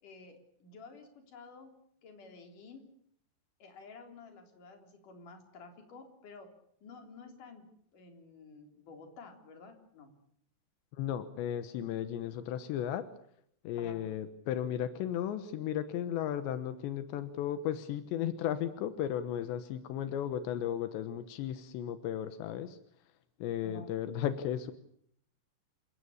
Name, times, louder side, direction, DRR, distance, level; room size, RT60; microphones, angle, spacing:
voice 1, 0.0-1.7 2.0-2.9 3.6-6.5 6.8-10.1 13.8-14.0 23.6-23.9, left 4 dB, 50° left, 5 dB, 4.9 m, -52 dB
voice 2, 10.9-13.1 13.7-22.8 23.4-24.7, left 10 dB, 85° left, 11 dB, 3.4 m, -35 dB
28.0 x 17.0 x 8.5 m, 0.67 s
omnidirectional pair, 4.9 m